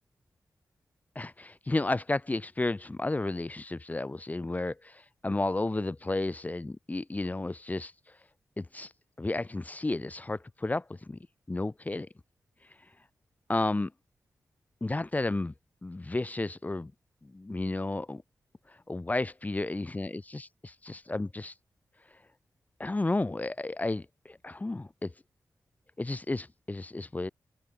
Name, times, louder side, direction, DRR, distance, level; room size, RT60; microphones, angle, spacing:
voice 1, 1.1-7.9 8.6-8.9 9.2-11.2 11.5-12.1 13.5-13.9 14.8-15.5 15.8-16.9 17.2-18.2 18.7-21.5 22.8-25.1 26.0-27.3, left 2 dB, 25° left, 1.1 m, -32 dB
open air
cardioid pair, 75°, 6 cm